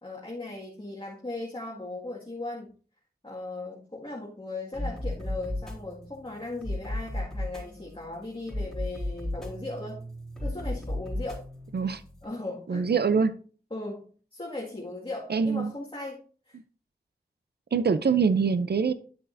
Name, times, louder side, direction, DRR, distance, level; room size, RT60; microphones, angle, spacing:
voice 1, 0.0-2.7 3.2-10.1 10.4-11.4 12.2-12.9 13.7-16.2 16.5-16.6, left 2 dB, 30° left, -4 dB, 2.0 m, -38 dB
sound 1, 4.7-12.2, left 1 dB, ahead, 3.7 m, -35 dB
voice 2, 12.7-13.4 15.3-15.7 17.7-18.9, right 5 dB, 90° right, 13 dB, 0.5 m, -24 dB
10.5 x 7.5 x 2.6 m, 0.39 s
wide cardioid pair, 60°, 16 cm